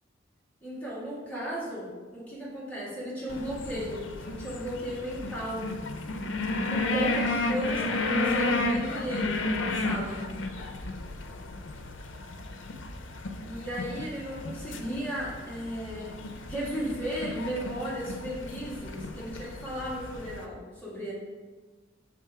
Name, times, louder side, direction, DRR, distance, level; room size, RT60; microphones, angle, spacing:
voice 1, 0.6-5.8 6.7-10.3 13.4-16.2 16.5-21.1, equal, 10° left, -8 dB, 1.9 m, -35 dB
sound 1, 3.3-20.4, left 2 dB, 75° left, 0.5 m, -33 dB
6.0 x 3.6 x 4.6 m, 1.3 s
head